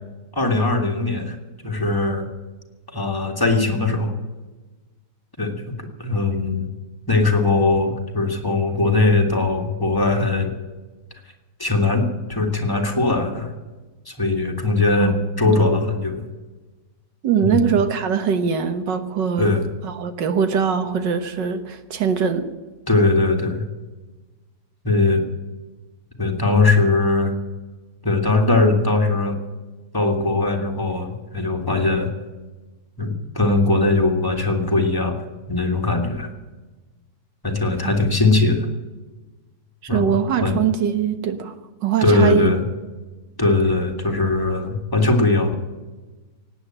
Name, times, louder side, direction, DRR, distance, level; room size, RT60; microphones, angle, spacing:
voice 1, 0.3-1.4 1.6-2.3 2.9-4.1 5.4-5.7 6.0-6.7 7.1-10.5 11.6-13.5 14.1-16.2 17.4-17.7 19.4-19.6 22.9-23.6 24.8-25.2 26.2-27.3 28.0-29.4 29.9-32.1 33.0-35.2 35.5-36.3 37.4-38.7 39.9-40.1 40.4-40.6 42.0-42.6 43.4-45.5, left 3 dB, 10° left, 2 dB, 1.9 m, -20 dB
voice 2, 17.2-22.4 37.8-37.9 39.8-41.5 41.8-42.5, right 7 dB, 90° right, 9 dB, 1.9 m, -22 dB
18.0 x 8.7 x 8.8 m, 1.3 s
omnidirectional pair, 1.9 m